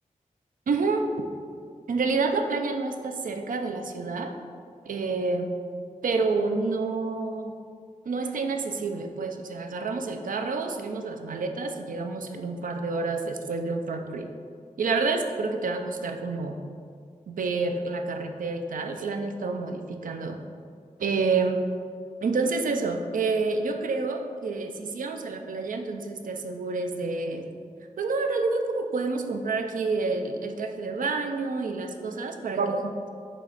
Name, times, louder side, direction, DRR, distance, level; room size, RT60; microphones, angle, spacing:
voice 1, 0.7-1.1 1.9-4.3 4.8-5.5 6.0-7.5 8.1-14.3 14.8-16.6 17.3-20.4 21.0-21.6 22.2-27.5 28.0-33.1, right 4 dB, 75° right, 5 dB, 0.5 m, -28 dB
6.3 x 3.2 x 5.0 m, 2.2 s
wide cardioid pair, 125°, 14 cm